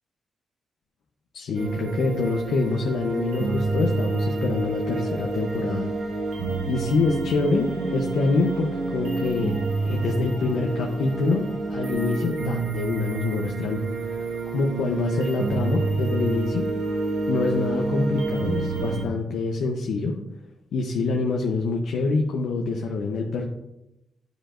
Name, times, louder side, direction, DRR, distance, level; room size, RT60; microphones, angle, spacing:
voice 1, 1.3-5.9 6.7-16.7 17.3-20.2 20.7-23.4, left 3 dB, 85° left, 2 dB, 0.7 m, -26 dB
sound 1, 1.6-19.0, right 3 dB, 90° right, 1.2 m, -28 dB
10.5 x 5.1 x 2.5 m, 0.90 s
wide cardioid pair, 140°, 0 cm